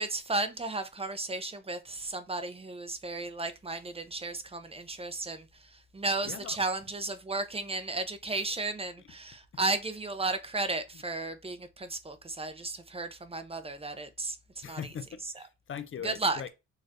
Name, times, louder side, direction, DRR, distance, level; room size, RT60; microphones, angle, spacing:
voice 1, 0.0-14.8 15.2-15.4 16.0-16.4, right 3 dB, 20° right, 0.7 m, -34 dB
voice 2, 6.2-6.6 9.5-9.7 14.6-16.5, left 8 dB, 45° left, 0.6 m, -40 dB
6.4 x 3.2 x 2.6 m
cardioid pair, 90°, 30 cm